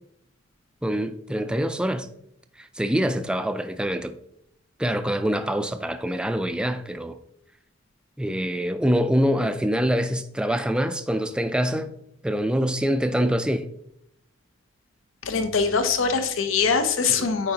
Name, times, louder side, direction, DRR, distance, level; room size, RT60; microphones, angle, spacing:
voice 1, 0.8-2.1 2.6-4.2 4.8-7.2 8.2-11.9 12.2-13.7 17.1-17.3, equal, 5° right, 0.3 m, -25 dB
voice 2, 15.2-17.5, left 5 dB, 80° left, 0.7 m, -23 dB
9.2 x 4.8 x 2.8 m
head